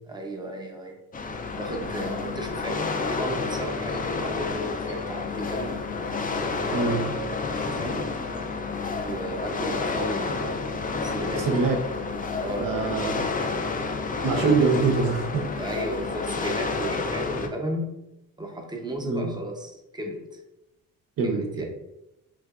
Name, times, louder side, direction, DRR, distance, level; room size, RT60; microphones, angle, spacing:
voice 1, 0.1-1.0 1.5-5.8 6.7-8.2 9.0-11.5 12.4-12.7 14.3-14.6 15.6-17.9 18.4-20.4 21.2-21.6, right 1 dB, 10° right, 2 dB, 0.7 m, -34 dB
sound 1, 1.1-17.5, left 4 dB, 25° left, 0.4 m, -30 dB
voice 2, 11.5-11.8 12.6-13.2 14.2-15.5 19.0-19.3 21.2-21.4, right 4 dB, 70° right, 3 dB, 0.9 m, -23 dB
5.8 x 2.5 x 2.4 m, 0.89 s
cardioid pair, 130°, 34 cm